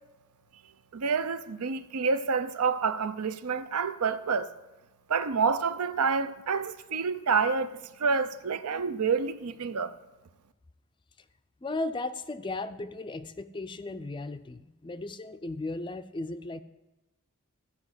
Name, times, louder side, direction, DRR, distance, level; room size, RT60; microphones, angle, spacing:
voice 1, 0.9-4.5 5.1-9.9, right 5 dB, 90° right, 0.6 m, -28 dB
voice 2, 11.6-16.6, left 2 dB, 20° left, 0.3 m, -36 dB
14.0 x 5.1 x 8.1 m
head